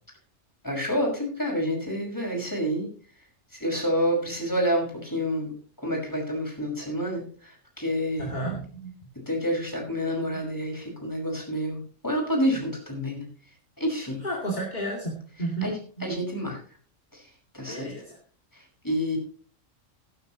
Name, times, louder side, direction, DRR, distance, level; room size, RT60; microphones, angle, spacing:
voice 1, 0.6-2.9 3.6-5.5 5.8-8.3 9.3-13.2 13.8-14.2 15.6-16.6 17.1-17.2 17.5-17.9 18.5-19.2, equal, 15° left, -1 dB, 5.8 m, -28 dB
voice 2, 8.2-8.9 14.2-16.1 17.7-18.2, right 2 dB, 35° left, -2 dB, 2.6 m, -32 dB
16.5 x 11.5 x 3.0 m, 0.43 s
omnidirectional pair, 1.3 m